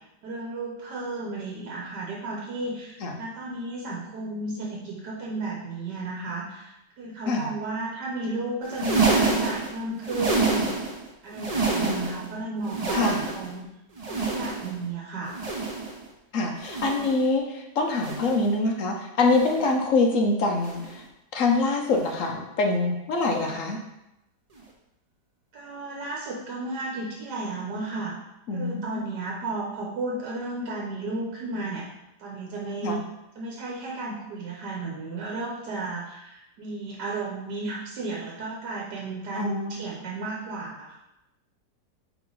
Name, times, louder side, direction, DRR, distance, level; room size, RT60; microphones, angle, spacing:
voice 1, 0.2-10.7 11.2-13.6 14.0-15.3 23.4-23.6 25.5-28.1 28.5-31.9 32.2-33.0 33.3-41.0, right 2 dB, 80° right, -3 dB, 1.6 m, -33 dB
sound 1, 8.6-11.0 11.3-12.3 12.6-13.6 14.0-14.8 15.3-16.0 16.6-17.2 17.9-18.5 19.2-19.8 20.6-21.0 21.9-22.2 23.2-23.4 24.6-24.7, right 3 dB, 30° right, 0.7 m, -28 dB
voice 2, 11.8-12.3 12.9-13.2 16.3-21.0 21.3-23.8 28.5-29.0 32.8-33.0 39.3-39.8, left 3 dB, 55° left, 2 dB, 1.1 m, -25 dB
5.3 x 4.6 x 3.9 m, 0.89 s
omnidirectional pair, 1.8 m